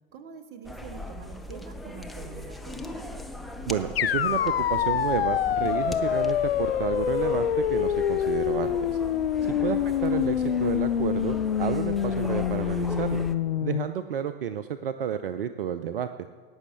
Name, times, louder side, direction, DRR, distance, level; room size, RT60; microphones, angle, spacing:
voice 1, 0.1-3.0, right 6 dB, 35° right, 8 dB, 1.4 m, -45 dB
sound 1, 0.6-13.3, left 2 dB, ahead, 0.8 m, -39 dB
voice 2, 3.7-9.0 9.6-13.3 13.6-16.1, right 9 dB, 65° right, 11 dB, 0.6 m, -31 dB
sound 2, 4.0-13.9, left 9 dB, 75° left, 0.5 m, -26 dB
18.0 x 6.4 x 8.0 m, 1.5 s
figure-of-eight pair, 85°, 30 cm